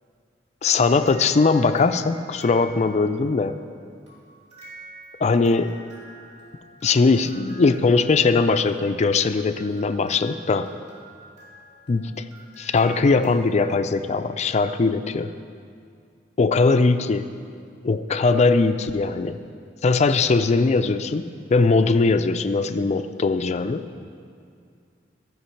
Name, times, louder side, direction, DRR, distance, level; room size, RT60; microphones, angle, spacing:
voice 1, 0.6-3.6 5.2-5.7 6.8-10.7 11.9-12.2 12.6-15.3 16.4-17.3 17.8-19.4 19.8-23.9, left 4 dB, 35° left, 10 dB, 0.4 m, -20 dB
sound 1, 0.6-3.3 4.1-13.9, right 1 dB, 35° right, 2.9 m, -47 dB
13.5 x 5.2 x 5.7 m, 2.3 s
head